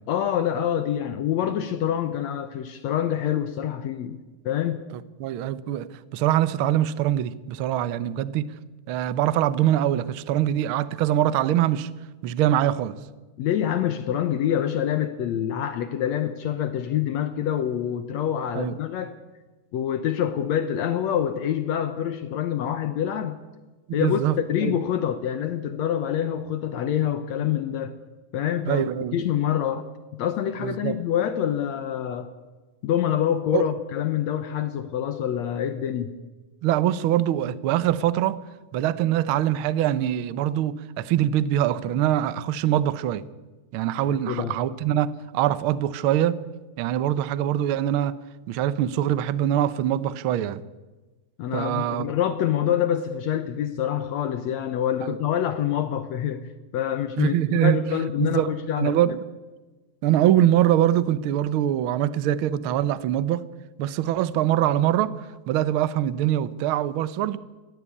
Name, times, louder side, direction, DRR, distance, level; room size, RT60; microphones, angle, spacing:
voice 1, 0.1-4.8 13.4-19.2 19.7-23.4 23.9-27.9 28.3-29.8 30.1-32.3 32.8-36.1 44.1-44.6 51.4-56.4 56.7-59.0, left 10 dB, 70° left, 10 dB, 2.1 m, -26 dB
voice 2, 4.9-8.5 8.9-11.9 12.2-13.0 18.5-18.8 23.9-24.8 28.7-29.2 30.6-31.0 33.5-33.7 36.6-38.4 38.7-43.2 43.7-46.4 46.8-48.1 48.5-50.6 51.5-52.1 55.0-55.2 57.2-57.8 58.2-58.5 58.8-59.2 60.0-63.4 63.8-65.1 65.5-67.4, right 12 dB, 90° right, 16 dB, 1.1 m, -23 dB
21.0 x 16.5 x 8.5 m, 1.2 s
omnidirectional pair, 3.5 m